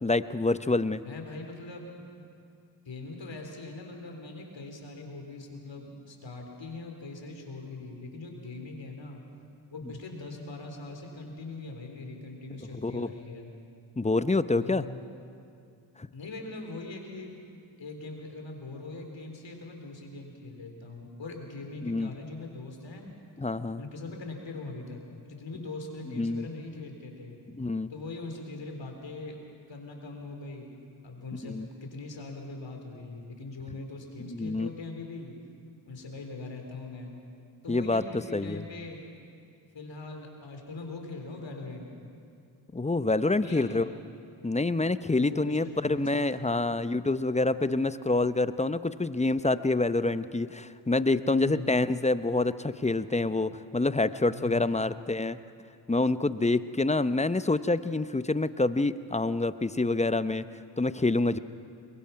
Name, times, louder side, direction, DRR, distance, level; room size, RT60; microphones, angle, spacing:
voice 1, 0.0-1.0 12.8-13.1 14.0-14.8 16.0-16.1 21.8-22.1 23.4-23.8 26.1-26.5 27.6-27.9 31.4-31.7 34.3-34.7 37.7-38.0 38.3-38.6 42.7-43.9 44.4-55.4 55.9-60.4 60.8-61.4, left 2 dB, 15° left, 14 dB, 0.7 m, -27 dB
voice 2, 1.0-1.9 2.9-9.2 9.7-13.5 14.5-15.0 16.1-17.4 17.8-23.1 23.8-27.4 27.9-29.4 29.7-30.7 31.0-35.3 35.8-37.2 37.6-39.0 39.7-41.8 43.4-43.9 45.1-46.8 51.2-51.8 54.3-54.9, left 3 dB, 65° left, 2 dB, 3.8 m, -41 dB
22.0 x 22.0 x 5.8 m, 2.5 s
cardioid pair, 45°, 48 cm